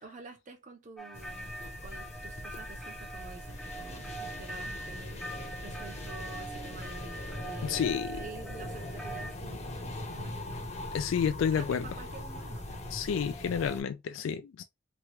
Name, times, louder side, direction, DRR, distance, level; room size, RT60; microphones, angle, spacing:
voice 1, 0.0-1.5 1.8-10.7 11.4-13.0, right 3 dB, 40° right, 0.6 m, -49 dB
sound 1, 1.0-9.4, right 2 dB, ahead, 0.3 m, -43 dB
sound 2, 1.1-13.8, left 1 dB, 35° left, 0.7 m, -41 dB
voice 2, 7.6-8.2 10.9-11.8 12.9-14.6, left 7 dB, 90° left, 0.3 m, -30 dB
3.0 x 2.3 x 2.9 m
head